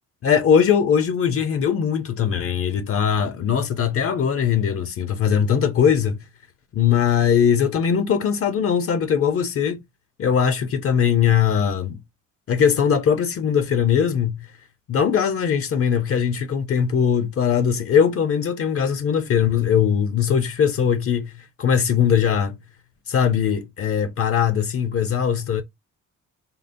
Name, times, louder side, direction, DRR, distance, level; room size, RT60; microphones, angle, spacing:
voice 1, 0.2-6.2 6.7-9.8 10.2-12.0 12.5-14.5 14.9-22.6 23.1-25.6, left 8 dB, 50° left, 0.6 m, -20 dB
3.8 x 2.0 x 2.5 m
cardioid pair, 90°, 30 cm